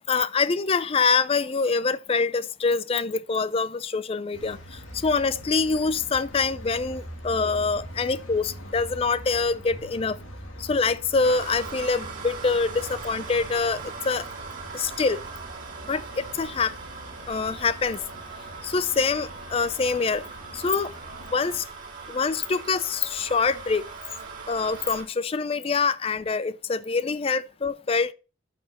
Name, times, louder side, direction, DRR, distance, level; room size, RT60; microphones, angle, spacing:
voice 1, 0.1-10.2 10.6-14.3 14.7-15.2 15.8-16.7 17.3-18.0 18.6-20.2 20.5-20.9 21.3-21.7 22.1-23.8 24.5-28.1, left 4 dB, 30° left, 0.4 m, -25 dB
sound 1, 4.3-21.6, equal, 80° left, 2.3 m, -43 dB
sound 2, 11.2-25.0, right 5 dB, 40° right, 2.3 m, -40 dB
11.0 x 5.8 x 2.9 m
head